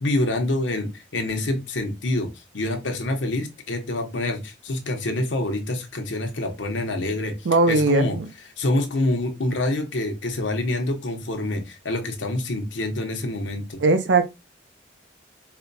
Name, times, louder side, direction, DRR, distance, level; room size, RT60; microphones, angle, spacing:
voice 1, 0.0-2.3 2.5-7.3 7.7-8.2 8.6-13.8, left 1 dB, 85° left, 0.9 m, -26 dB
voice 2, 7.4-8.3 13.8-14.2, right 3 dB, 75° right, 0.5 m, -19 dB
4.2 x 2.2 x 2.6 m
head